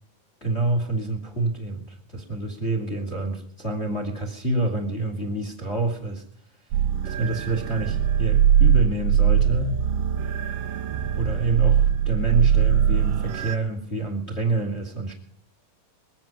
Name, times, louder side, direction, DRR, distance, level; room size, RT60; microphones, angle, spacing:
voice 1, 0.4-6.2 6.6-6.7 7.0-9.8 11.1-15.1, right 2 dB, 20° left, 3 dB, 2.4 m, -27 dB
sound 1, 6.7-13.6, right 9 dB, 75° right, 2.3 m, -21 dB
22.5 x 9.5 x 5.2 m, 0.62 s
omnidirectional pair, 4.3 m